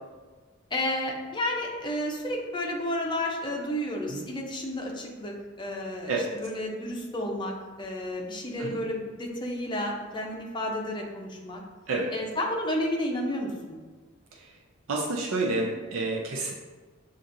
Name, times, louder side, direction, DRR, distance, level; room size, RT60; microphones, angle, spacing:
voice 1, 0.7-11.6 12.1-13.8, left 1 dB, 20° left, 0 dB, 0.6 m, -31 dB
voice 2, 14.9-16.5, right 2 dB, 75° right, -2 dB, 0.5 m, -29 dB
7.1 x 2.5 x 2.6 m, 1.4 s
head